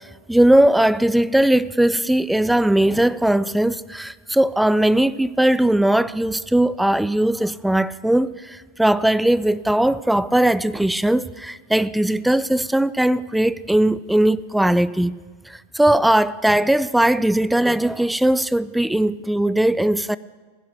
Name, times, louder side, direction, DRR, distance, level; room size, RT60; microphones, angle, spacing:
voice 1, 0.3-15.2 15.5-20.2, right 1 dB, 5° right, 0.3 m, -19 dB
15.5 x 10.0 x 6.5 m
figure-of-eight pair, 90°, 0 cm